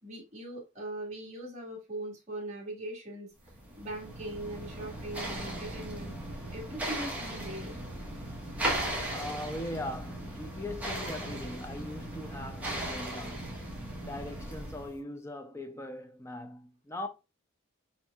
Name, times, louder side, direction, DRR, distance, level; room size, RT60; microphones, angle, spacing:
voice 1, 0.0-3.3 3.8-6.1 6.5-7.7, right 1 dB, 30° right, 1.7 m, -40 dB
sound 1, 3.5-15.0, right 1 dB, 5° right, 1.0 m, -37 dB
voice 2, 9.1-13.6 14.0-17.1, left 1 dB, 15° left, 0.5 m, -40 dB
4.4 x 4.2 x 2.3 m
head